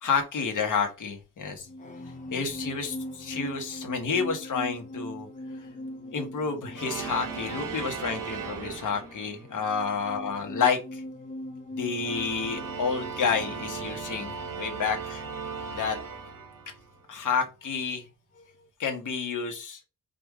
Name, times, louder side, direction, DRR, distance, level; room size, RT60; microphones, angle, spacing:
voice 1, 0.0-1.7 2.3-5.3 5.6-5.7 6.1-11.0 11.8-15.2 15.7-16.0 17.1-18.0 18.8-19.8, left 5 dB, 60° left, 4 dB, 1.1 m, -30 dB
sound 1, 1.4-18.1 18.4-18.7, left 1 dB, 20° left, 0.7 m, -42 dB
sound 2, 6.7-9.5 11.8-17.0, right 6 dB, 65° right, 1.1 m, -37 dB
5.0 x 2.5 x 3.5 m, 0.29 s
wide cardioid pair, 120°, 34 cm